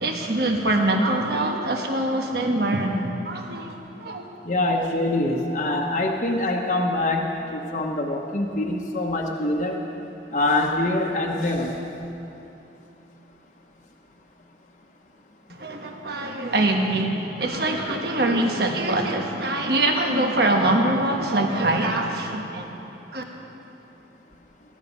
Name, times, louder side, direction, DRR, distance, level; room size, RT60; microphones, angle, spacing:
voice 1, 0.0-3.0 3.2-4.2 15.6-22.7 23.1-23.2, right 2 dB, 60° right, 2 dB, 1.3 m, -23 dB
voice 2, 4.4-9.8 10.3-11.7, left 2 dB, 40° left, -1 dB, 1.0 m, -24 dB
20.0 x 11.5 x 5.4 m, 2.9 s
head